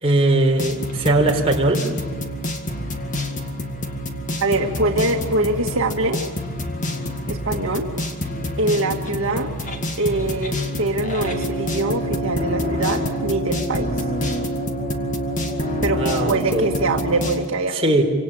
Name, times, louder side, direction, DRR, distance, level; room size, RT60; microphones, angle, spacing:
voice 1, 0.0-1.9 16.0-16.7 17.7-18.0, right 2 dB, 25° right, -1 dB, 4.2 m, -19 dB
sound 1, 0.6-17.5, equal, 35° left, 2.2 m, -27 dB
voice 2, 4.4-6.2 7.3-7.9 8.6-9.5 10.0-13.9 15.8-18.0, right 2 dB, 65° right, 2 dB, 1.7 m, -23 dB
26.5 x 26.0 x 8.7 m, 1.3 s
head